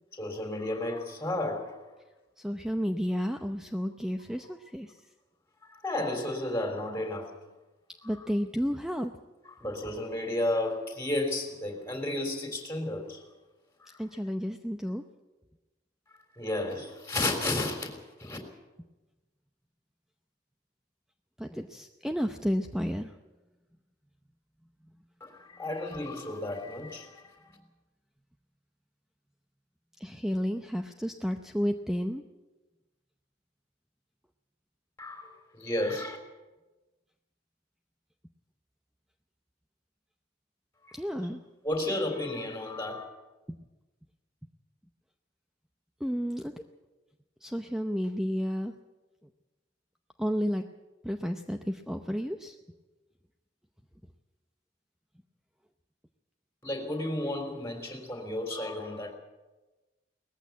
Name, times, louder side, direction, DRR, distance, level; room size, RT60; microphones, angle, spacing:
voice 1, 0.1-1.8 5.6-7.3 9.6-13.2 13.8-14.0 16.4-18.4 25.2-27.6 35.0-36.2 40.8-41.0 41.6-43.0 56.6-59.2, left 1 dB, 15° left, 3 dB, 3.5 m, -33 dB
voice 2, 2.4-5.0 8.0-9.1 14.0-15.0 21.4-23.1 30.0-32.2 40.9-41.4 43.5-43.6 46.0-46.6 47.4-48.7 50.2-50.7 51.0-52.6, equal, 5° right, 5 dB, 0.7 m, -31 dB
19.0 x 14.5 x 9.3 m, 1.1 s
head